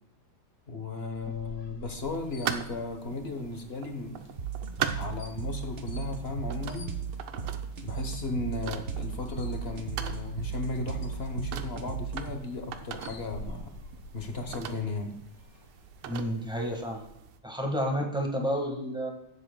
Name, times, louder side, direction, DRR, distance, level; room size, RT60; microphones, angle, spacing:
voice 1, 0.7-4.2 4.9-7.0 7.8-13.8 14.1-15.1, left 3 dB, 45° left, 5 dB, 0.9 m, -35 dB
sound 1, 1.1-17.1, left 2 dB, 85° left, 2.4 m, -48 dB
sound 2, 2.0-17.4, right 9 dB, 85° right, 1.6 m, -41 dB
sound 3, 4.4-12.4, right 7 dB, 50° right, 0.9 m, -36 dB
voice 2, 16.0-17.0 17.4-19.1, equal, 5° right, 1 dB, 1.2 m, -30 dB
16.0 x 7.7 x 2.2 m, 0.80 s
omnidirectional pair, 2.3 m